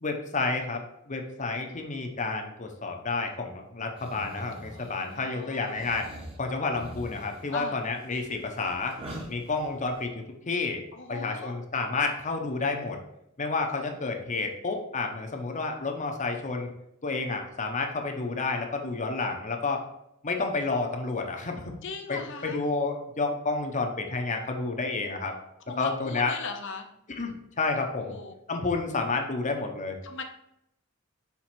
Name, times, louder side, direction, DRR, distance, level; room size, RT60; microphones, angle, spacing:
voice 1, 0.0-6.1 6.4-9.0 9.3-10.8 11.1-13.0 13.4-16.7 17.0-19.8 20.2-21.7 22.1-25.3 25.8-26.3 27.2-28.2 28.5-30.0, left 3 dB, 35° left, 3 dB, 0.8 m, -30 dB
sound 1, 4.0-5.2 5.7-10.0, right 1 dB, 25° right, 1.2 m, -44 dB
voice 2, 4.7-5.8 7.5-7.8 10.9-11.5 21.8-22.6 25.7-26.9 28.0-28.3 30.0-30.2, left 4 dB, 60° left, 4 dB, 0.8 m, -39 dB
5.9 x 3.8 x 4.4 m, 0.80 s
head